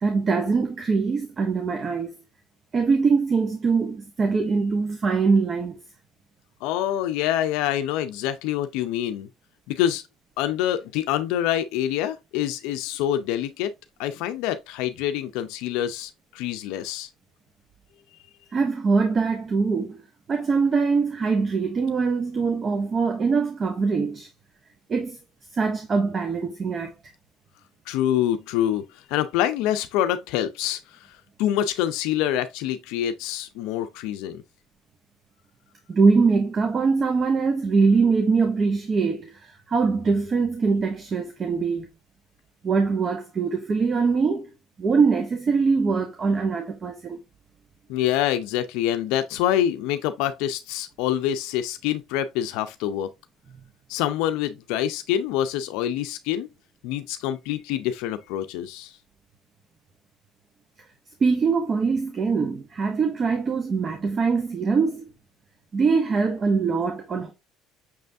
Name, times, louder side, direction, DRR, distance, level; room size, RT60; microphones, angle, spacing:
voice 1, 0.0-2.1 2.7-5.8 18.5-20.0 20.3-24.3 24.9-25.2 25.6-26.9 35.9-41.9 42.6-44.5 44.8-47.2 53.5-53.6 61.2-65.0 65.7-67.3, right 4 dB, 35° right, 0.8 m, -23 dB
voice 2, 6.6-9.3 9.7-10.0 10.4-13.7 14.0-17.1 27.9-34.4 47.9-53.1 53.9-56.5 56.8-59.0, left 11 dB, 80° left, 0.4 m, -26 dB
6.0 x 3.3 x 2.5 m
cardioid pair, 115°, 0 cm